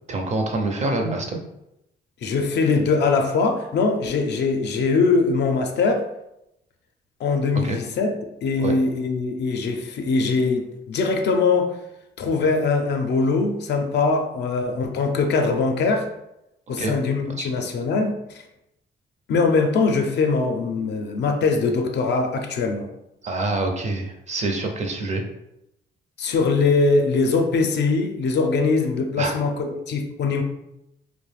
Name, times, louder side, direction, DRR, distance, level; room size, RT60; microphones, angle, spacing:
voice 1, 0.1-1.4 7.6-7.8 8.6-8.7 16.8-16.9 17.3-17.5 23.2-25.2 29.2-29.3, right 2 dB, 35° right, 3 dB, 0.5 m, -26 dB
voice 2, 2.2-6.1 7.2-8.1 8.4-11.8 12.2-16.1 16.7-18.4 19.3-22.9 26.2-30.4, left 4 dB, 60° left, 4 dB, 0.4 m, -22 dB
2.4 x 2.1 x 3.2 m, 0.85 s
cardioid pair, 90°, 20 cm